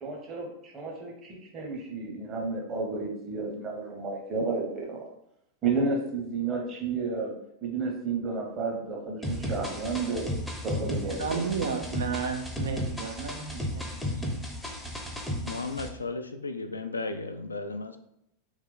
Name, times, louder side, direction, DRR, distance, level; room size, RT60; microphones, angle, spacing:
voice 1, 0.0-5.1 5.6-7.3 7.6-10.3 10.6-11.7, right 4 dB, 25° right, 0 dB, 1.0 m, -32 dB
sound 1, 9.2-15.9, left 1 dB, 5° left, 0.7 m, -34 dB
voice 2, 11.2-13.8 14.1-14.2, right 5 dB, 65° right, 4 dB, 0.5 m, -32 dB
voice 3, 15.5-18.0, left 3 dB, 80° left, 8 dB, 0.3 m, -34 dB
3.5 x 2.9 x 3.4 m, 0.78 s
figure-of-eight pair, 90°, 0 cm